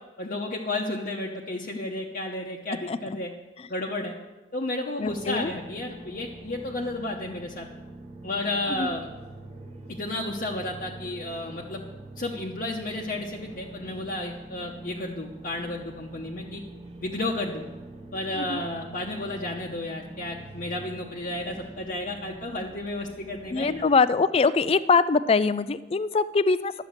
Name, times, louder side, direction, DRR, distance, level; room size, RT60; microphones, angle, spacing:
voice 1, 0.2-3.3 3.7-4.1 4.5-7.7 8.2-9.1 9.9-11.9 12.2-16.6 17.0-17.7 18.1-23.8, left 2 dB, 50° left, -2 dB, 0.9 m, -32 dB
voice 2, 5.0-5.5 8.7-8.9 18.4-18.6 23.5-26.7, left 4 dB, 30° left, 16 dB, 0.3 m, -23 dB
sound 1, 5.0-23.8, right 2 dB, 35° right, 1.4 m, -44 dB
11.5 x 7.2 x 6.5 m, 1.2 s
head